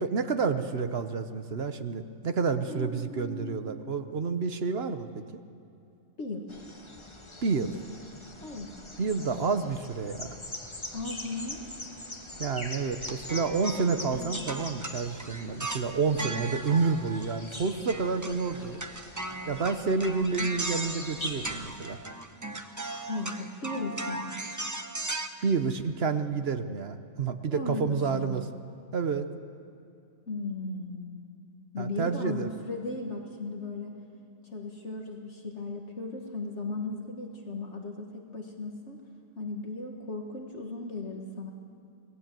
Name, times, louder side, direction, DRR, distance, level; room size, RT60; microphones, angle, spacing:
voice 1, 0.0-5.2 7.4-7.7 9.0-10.4 12.4-18.8 19.5-22.0 25.4-28.5 28.9-29.3 31.8-32.5, right 5 dB, 50° right, 9 dB, 1.1 m, -29 dB
voice 2, 2.7-3.9 6.2-6.4 8.4-8.7 10.9-11.6 23.1-24.4 27.5-28.4 30.3-31.2 31.7-33.9 34.4-39.0 39.4-41.5, left 2 dB, 55° left, 2 dB, 1.9 m, -36 dB
sound 1, 6.5-21.7, left 2 dB, 20° left, 1.4 m, -43 dB
sound 2, 13.0-17.6 17.9-25.3, right 2 dB, 15° right, 0.8 m, -37 dB
25.5 x 18.5 x 7.6 m, 2.6 s
omnidirectional pair, 1.4 m